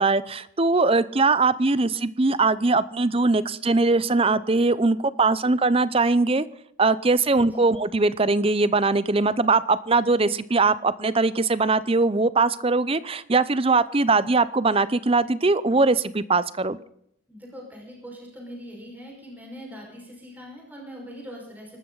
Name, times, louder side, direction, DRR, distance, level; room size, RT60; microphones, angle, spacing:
voice 1, 0.0-6.4 6.8-16.8, right 3 dB, 25° right, 16 dB, 0.6 m, -21 dB
voice 2, 7.3-7.6 17.3-21.8, equal, 10° right, -1 dB, 5.4 m, -42 dB
24.5 x 13.0 x 4.0 m, 0.72 s
head